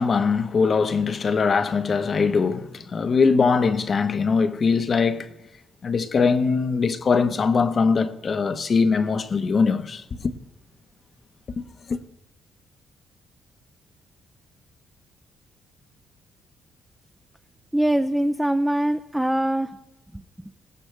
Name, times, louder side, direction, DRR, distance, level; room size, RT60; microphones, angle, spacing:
voice 1, 0.0-5.3 5.8-10.3 11.6-12.0, left 5 dB, 45° left, 1.0 m, -22 dB
voice 2, 17.7-19.8 20.1-20.2, right 1 dB, 5° right, 0.5 m, -23 dB
20.0 x 16.0 x 3.3 m
cardioid pair, 90°, 0 cm